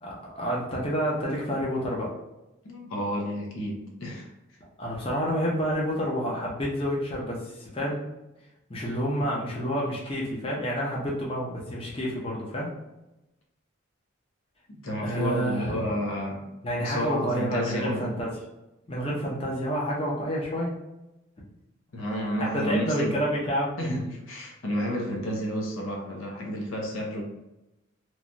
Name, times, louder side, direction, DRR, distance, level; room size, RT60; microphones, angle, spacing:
voice 1, 0.0-2.1 4.8-8.0 8.7-12.7 15.0-15.9 16.6-18.3 18.9-20.7 22.4-23.8, equal, 25° left, -4 dB, 0.6 m, -29 dB
voice 2, 2.6-4.3 14.7-18.2 21.9-23.2 23.8-27.2, equal, 75° left, 0 dB, 0.7 m, -31 dB
3.2 x 2.2 x 2.5 m, 0.94 s
head